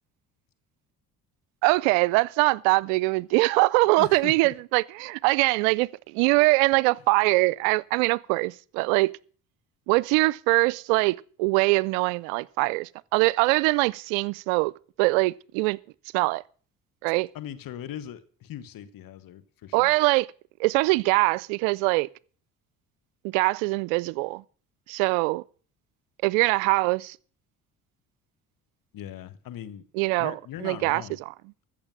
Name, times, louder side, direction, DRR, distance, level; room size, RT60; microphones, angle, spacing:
voice 1, 1.6-9.1 9.9-14.7 15.0-15.8 16.1-16.4 17.0-17.3 19.7-20.3 20.6-22.1 23.2-24.4 24.9-25.4 26.2-27.2 30.0-30.3 30.6-31.0, right 24 dB, 80° right, 0.5 m, -23 dB
voice 2, 4.0-4.5 17.3-19.9 28.9-29.8 30.2-31.2, left 11 dB, 60° left, 1.5 m, -39 dB
14.5 x 7.1 x 7.5 m
hypercardioid pair, 65°, 39 cm